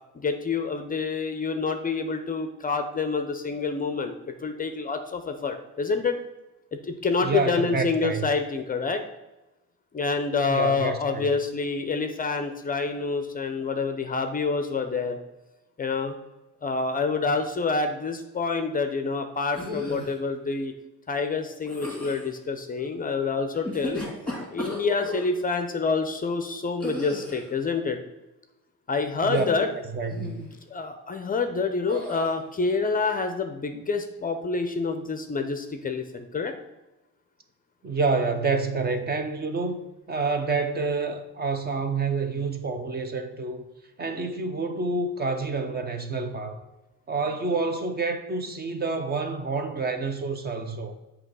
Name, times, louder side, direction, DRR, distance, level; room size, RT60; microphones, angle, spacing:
voice 1, 0.1-4.2 4.4-6.2 6.9-9.0 9.9-15.2 15.8-16.1 16.6-20.7 21.1-24.0 24.5-28.0 28.9-29.7 30.7-36.5, left 4 dB, 25° left, 7 dB, 0.5 m, -27 dB
voice 2, 7.2-8.3 10.5-11.3 29.2-29.4 29.9-30.5 37.8-39.8 40.1-43.6 44.0-46.6 47.1-50.9, right 4 dB, 30° right, 7 dB, 0.6 m, -28 dB
sound 1, 19.5-20.2 21.6-22.3 23.5-25.3 26.8-27.5 29.3-29.8 30.1-30.5 31.9-32.3, left 1 dB, 5° left, 1.8 m, -35 dB
7.5 x 2.9 x 5.4 m, 1.0 s
cardioid pair, 135°, 32 cm